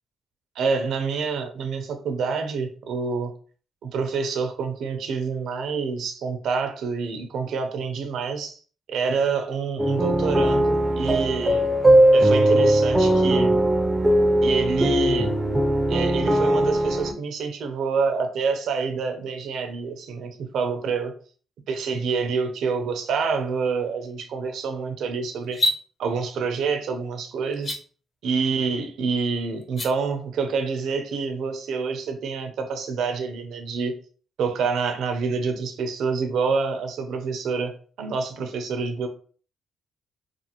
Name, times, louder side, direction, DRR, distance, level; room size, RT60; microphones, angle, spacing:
voice 1, 0.6-3.3 3.8-8.6 8.9-11.7 12.1-13.6 14.4-15.3 15.9-21.1 21.7-25.6 26.0-27.8 28.2-33.9 34.4-37.7 38.0-39.1, right 5 dB, 75° right, 7 dB, 0.5 m, -27 dB
sound 1, 9.8-17.1, right 1 dB, 15° right, 0.4 m, -19 dB
sound 2, 25.4-25.8 27.5-27.8 29.6-29.9, equal, 35° left, 0.7 m, -24 dB
2.5 x 2.4 x 2.8 m, 0.42 s
cardioid pair, 90°, 0 cm